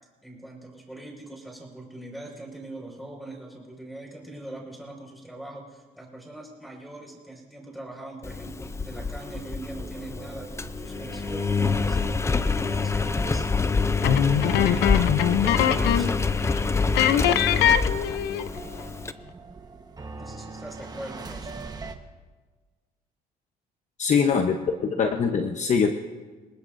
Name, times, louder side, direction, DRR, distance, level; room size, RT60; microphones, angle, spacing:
voice 1, 0.2-15.3 15.7-16.8 17.1-17.8 20.2-21.6, right 1 dB, ahead, 0 dB, 5.5 m, -42 dB
Engine, 8.2-19.1, left 4 dB, 15° left, 0.6 m, -26 dB
sound 1, 9.7-21.9, right 3 dB, 25° right, 1.3 m, -42 dB
sound 2, 14.0-16.2 16.5-16.6 16.9-18.6, left 10 dB, 80° left, 0.8 m, -22 dB
voice 2, 24.0-25.9, left 6 dB, 45° left, 4 dB, 1.0 m, -23 dB
27.0 x 19.5 x 2.7 m, 1.4 s
cardioid pair, 110°, 17 cm